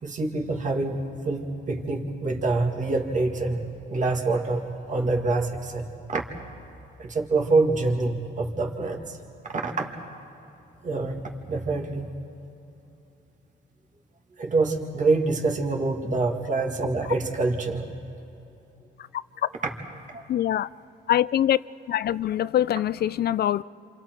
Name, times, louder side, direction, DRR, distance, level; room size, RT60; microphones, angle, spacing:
voice 1, 0.0-6.2 7.0-9.2 9.5-9.9 10.8-12.1 14.4-17.9 20.1-20.2, right 3 dB, 40° right, 1 dB, 2.1 m, -26 dB
voice 2, 20.3-20.7 21.1-21.6 21.9-23.6, left 11 dB, 55° left, 18 dB, 0.4 m, -23 dB
28.0 x 27.0 x 4.6 m, 2.8 s
cardioid pair, 90°, 20 cm